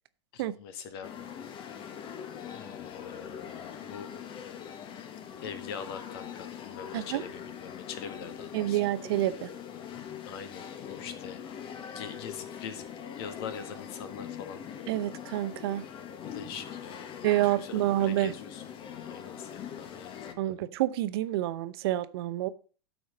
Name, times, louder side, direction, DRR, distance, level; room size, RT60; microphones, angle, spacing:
voice 1, 0.3-1.4 2.5-4.1 5.4-8.8 10.3-11.4 11.9-12.8 13.2-14.8 16.1-20.5, left 7 dB, 60° left, 1.8 m, -43 dB
sound 1, 1.0-20.3, left 8 dB, 35° left, 1.3 m, -42 dB
voice 2, 8.5-9.5 14.9-15.8 17.2-18.3 20.4-22.5, right 14 dB, 60° right, 0.7 m, -28 dB
12.5 x 4.6 x 5.3 m
hypercardioid pair, 95°, 14 cm